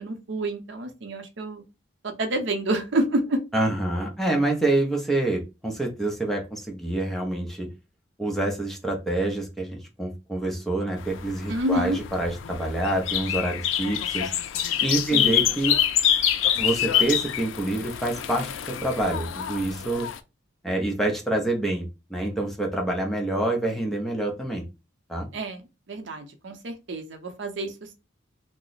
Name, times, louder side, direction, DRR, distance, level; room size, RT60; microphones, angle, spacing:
voice 1, 0.0-1.6 2.0-3.4 11.5-12.0 15.1-15.5 25.3-27.7, right 1 dB, 65° right, 5 dB, 0.6 m, -28 dB
voice 2, 3.5-7.7 8.2-14.3 14.8-15.7 16.5-18.5 18.8-20.1 20.6-24.6 25.1-25.3, right 2 dB, ahead, 0 dB, 0.5 m, -27 dB
sound 1, 11.0-20.2, left 10 dB, 80° left, 0.3 m, -26 dB
2.9 x 2.0 x 3.8 m, 0.27 s
head